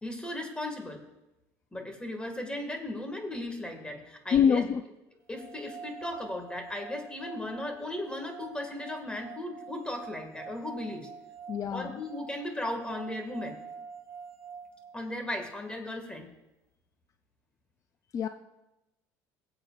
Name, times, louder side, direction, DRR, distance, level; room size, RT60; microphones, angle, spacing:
voice 1, 0.0-1.0 1.7-4.6 5.3-11.1 11.7-13.6 14.9-16.3, left 1 dB, 10° left, 4 dB, 2.0 m, -36 dB
voice 2, 4.3-4.8 11.5-12.0 18.1-18.3, left 7 dB, 40° left, 8 dB, 0.5 m, -25 dB
sound 1, 5.3-15.5, right 6 dB, 35° right, 2.3 m, -47 dB
21.0 x 7.9 x 2.5 m, 0.96 s
supercardioid pair, 95°, 9 cm